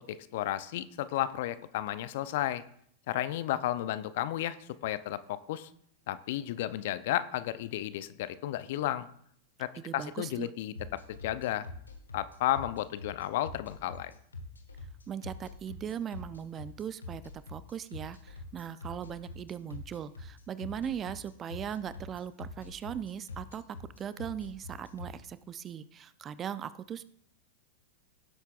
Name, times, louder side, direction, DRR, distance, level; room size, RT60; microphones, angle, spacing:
voice 1, 0.0-2.6 3.1-5.7 6.1-9.1 9.6-11.7 12.1-14.1, left 13 dB, 60° left, 14 dB, 0.6 m, -33 dB
voice 2, 9.8-10.5 15.1-17.2 17.5-27.0, right 8 dB, 30° right, 16 dB, 0.5 m, -39 dB
sound 1, 10.7-25.1, left 2 dB, 85° left, 1.4 m, -44 dB
17.0 x 8.0 x 2.5 m, 0.65 s
figure-of-eight pair, 95°, 0 cm